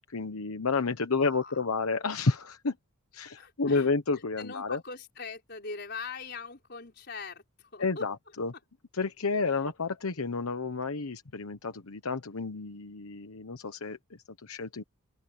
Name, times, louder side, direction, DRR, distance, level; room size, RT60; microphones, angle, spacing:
voice 1, 0.1-2.7 3.1-4.8 7.8-8.5 8.9-14.0 14.4-14.8, left 4 dB, 85° left, 1.1 m, -30 dB
voice 2, 1.1-1.9 3.4-3.9 4.4-8.1 9.4-9.7, left 4 dB, 50° left, 4.8 m, -42 dB
open air
head